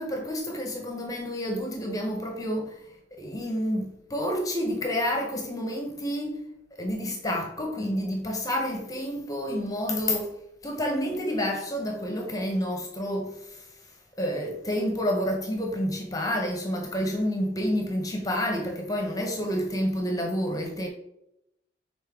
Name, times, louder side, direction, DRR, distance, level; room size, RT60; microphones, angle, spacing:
voice 1, 0.0-2.8 3.1-6.4 6.8-10.3 10.6-13.7 14.2-20.9, equal, 20° left, 0.9 m, -29 dB
6.4 x 4.1 x 3.6 m
head